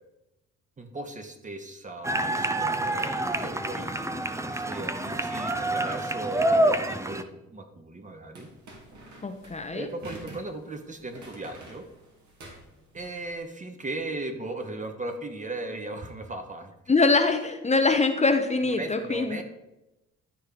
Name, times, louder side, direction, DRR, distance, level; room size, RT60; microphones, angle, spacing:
voice 1, 0.8-4.0 4.3-8.5 9.7-11.8 12.9-16.7 18.7-19.4, right 2 dB, 25° right, 6 dB, 1.1 m, -37 dB
sound 1, 2.0-7.2, right 1 dB, 10° right, 0.6 m, -27 dB
sound 2, 8.4-13.4, right 2 dB, 70° right, 2.4 m, -48 dB
voice 2, 9.2-9.9 16.9-19.4, left 3 dB, 25° left, 6 dB, 0.8 m, -23 dB
11.5 x 4.5 x 5.0 m, 0.94 s
cardioid pair, 90°, 30 cm